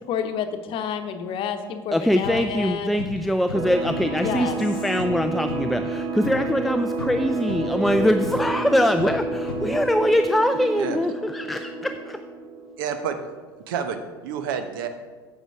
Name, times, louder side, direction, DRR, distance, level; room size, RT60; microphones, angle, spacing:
voice 1, 0.1-3.0 4.2-4.6, left 7 dB, 45° left, 7 dB, 1.0 m, -29 dB
voice 2, 1.9-12.2, equal, ahead, 8 dB, 0.4 m, -23 dB
sound 1, 2.2-10.2, left 5 dB, 75° left, 0.5 m, -38 dB
sound 2, 3.5-12.9, right 3 dB, 35° right, 1.6 m, -29 dB
voice 3, 12.8-13.2 13.7-14.9, right 7 dB, 65° right, 8 dB, 0.9 m, -29 dB
9.1 x 7.3 x 4.8 m, 1.4 s
figure-of-eight pair, 70°, 12 cm